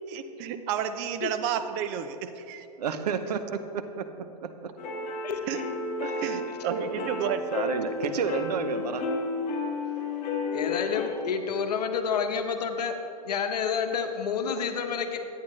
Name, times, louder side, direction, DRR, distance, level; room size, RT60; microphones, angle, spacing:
voice 1, 0.1-2.7 5.5-5.6 6.2-7.5, right 9 dB, 40° right, 9 dB, 0.6 m, -31 dB
voice 2, 2.8-4.7 6.0-6.4 6.7-7.1 7.5-9.1, right 6 dB, 75° right, 9 dB, 0.7 m, -31 dB
sound 1, 4.8-11.1, left 3 dB, 35° left, 1.7 m, -32 dB
voice 3, 10.5-12.9 13.3-15.2, left 6 dB, 80° left, 6 dB, 1.0 m, -29 dB
10.5 x 9.1 x 3.2 m, 2.7 s
hypercardioid pair, 125°, 20 cm